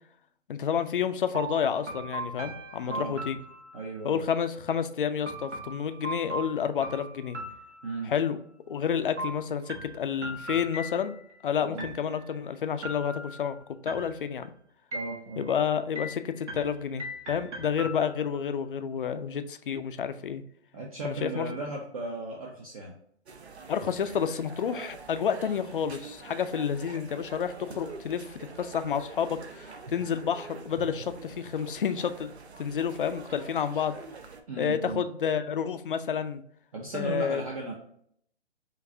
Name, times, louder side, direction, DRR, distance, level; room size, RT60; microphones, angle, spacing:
voice 1, 0.5-3.4 4.0-7.4 8.1-8.4 8.7-11.1 11.4-13.6 13.8-14.5 15.4-20.4 21.0-21.5 23.7-32.3 32.6-34.0 34.6-36.4 36.9-37.4, left 7 dB, 50° left, 10 dB, 0.5 m, -30 dB
sound 1, 1.3-4.1 5.3-8.3 9.2-11.4 11.8-12.4 12.8-13.5 13.9-14.5 14.9-15.6 16.0-18.4, right 1 dB, 85° right, 1.2 m, -39 dB
voice 2, 2.8-3.2 3.7-4.2 7.8-8.1 11.6-11.9 14.9-15.5 20.7-22.9 34.5-35.0 36.7-37.7, right 3 dB, 30° right, -1 dB, 0.7 m, -36 dB
sound 2, 23.3-34.4, right 4 dB, 65° right, 0.8 m, -46 dB
5.9 x 2.6 x 2.6 m, 0.66 s
figure-of-eight pair, 140°, 34 cm